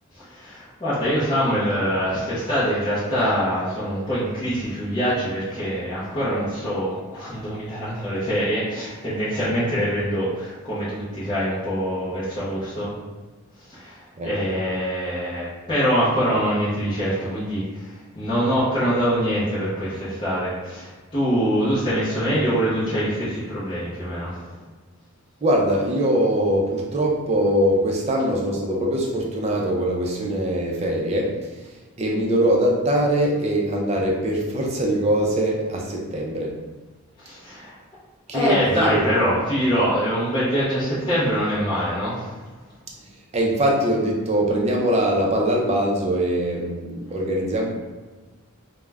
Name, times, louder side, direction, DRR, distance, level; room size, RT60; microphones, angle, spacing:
voice 1, 0.1-12.9 13.7-17.9 18.2-24.5 37.2-37.8 38.3-42.3, equal, 20° left, -12 dB, 0.5 m, -24 dB
voice 2, 25.4-31.4 32.0-36.6 38.3-39.4 43.3-47.7, right 1 dB, 30° right, -1 dB, 0.4 m, -22 dB
2.3 x 2.0 x 3.3 m, 1.3 s
head